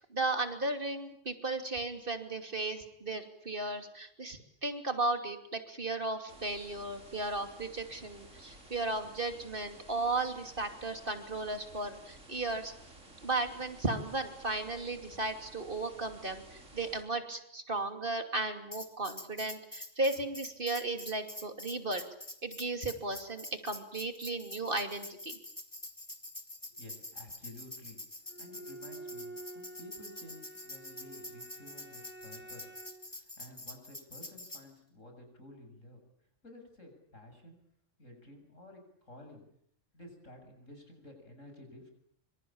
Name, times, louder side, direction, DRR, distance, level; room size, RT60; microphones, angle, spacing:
voice 1, 0.1-12.7 13.2-22.0 22.4-25.4, right 2 dB, 45° right, 6 dB, 3.0 m, -35 dB
sound 1, 6.3-17.0, right 1 dB, 80° right, 5.1 m, -54 dB
Tambourine, 18.7-34.6, left 1 dB, 15° left, 2.6 m, -46 dB
voice 2, 26.7-28.0 28.4-32.7 33.1-36.0 36.4-37.6 38.0-39.4 39.9-41.9, left 1 dB, 85° left, 4 dB, 7.9 m, -53 dB
Bowed string instrument, 28.3-33.1, right 2 dB, 10° right, 3.1 m, -49 dB
26.0 x 25.5 x 8.8 m, 0.71 s
omnidirectional pair, 1.3 m